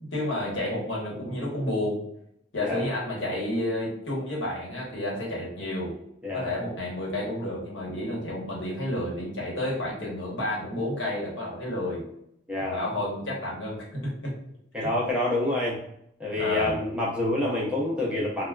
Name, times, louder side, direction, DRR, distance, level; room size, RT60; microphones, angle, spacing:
voice 1, 0.0-2.0 2.5-5.9 6.3-12.0 12.6-14.3 14.8-14.9 16.4-16.8, left 1 dB, 75° left, -4 dB, 1.1 m, -31 dB
voice 2, 12.5-12.8 14.7-15.8 16.2-18.5, left 1 dB, 5° right, -6 dB, 0.6 m, -27 dB
3.4 x 2.2 x 2.3 m, 0.74 s
head